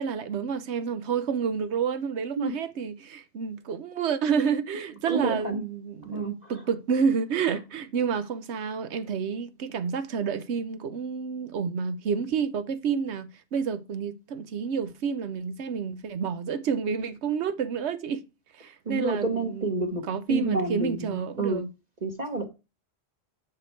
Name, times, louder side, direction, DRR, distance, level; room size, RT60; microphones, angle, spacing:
voice 1, 0.0-18.2 18.5-21.7, right 6 dB, 85° right, 1.1 m, -29 dB
voice 2, 5.1-5.6 6.0-6.5 18.9-20.0 20.3-21.6 22.0-22.5, right 3 dB, 40° right, 1.2 m, -29 dB
7.3 x 6.7 x 4.5 m
omnidirectional pair, 1.1 m